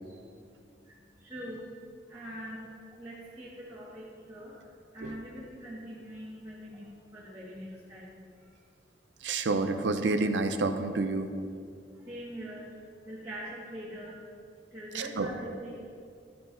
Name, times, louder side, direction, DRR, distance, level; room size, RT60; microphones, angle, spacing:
voice 1, 0.0-1.7 2.1-8.5 11.9-14.3 14.7-15.8, equal, 20° right, -10 dB, 1.5 m, -44 dB
voice 2, 9.2-11.3 14.9-15.3, right 3 dB, 90° right, 8 dB, 0.5 m, -29 dB
12.0 x 8.7 x 2.6 m, 2.4 s
head